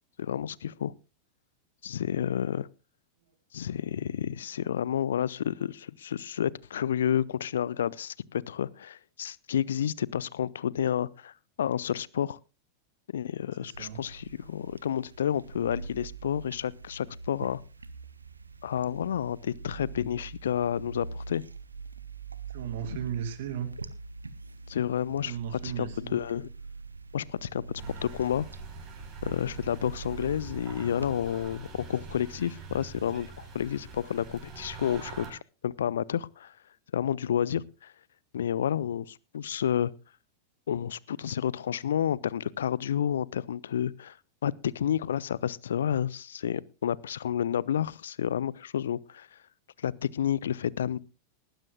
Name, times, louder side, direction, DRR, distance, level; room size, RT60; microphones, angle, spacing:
voice 1, 0.2-0.9 1.8-2.7 3.5-11.3 11.6-12.4 13.1-17.6 18.6-21.4 24.7-26.5 27.1-27.6 28.0-28.5 29.2-36.5 36.9-37.9 38.3-39.9 40.7-44.2 44.4-49.4 49.8-51.0, left 9 dB, 65° left, 0.5 m, -30 dB
voice 2, 13.6-14.0 22.5-23.7 25.2-26.2, right 9 dB, 55° right, 2.4 m, -36 dB
sound 1, 13.7-31.1, right 4 dB, 80° right, 0.9 m, -44 dB
sound 2, 27.8-35.3, right 4 dB, 30° right, 6.1 m, -45 dB
19.5 x 15.5 x 2.2 m
figure-of-eight pair, 90°, 0 cm